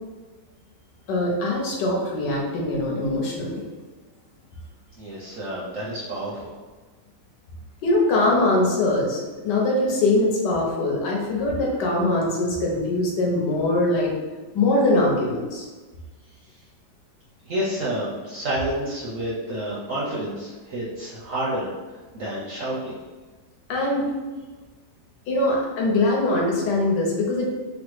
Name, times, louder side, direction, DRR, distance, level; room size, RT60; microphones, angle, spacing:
voice 1, 1.1-3.7 7.8-14.1 14.5-15.7 23.7-24.1 25.3-27.5, left 2 dB, 75° left, -2 dB, 1.3 m, -22 dB
voice 2, 5.0-6.6 16.3-16.6 17.4-23.0, right 1 dB, 65° right, -7 dB, 0.8 m, -30 dB
3.4 x 2.0 x 3.0 m, 1.3 s
omnidirectional pair, 1.9 m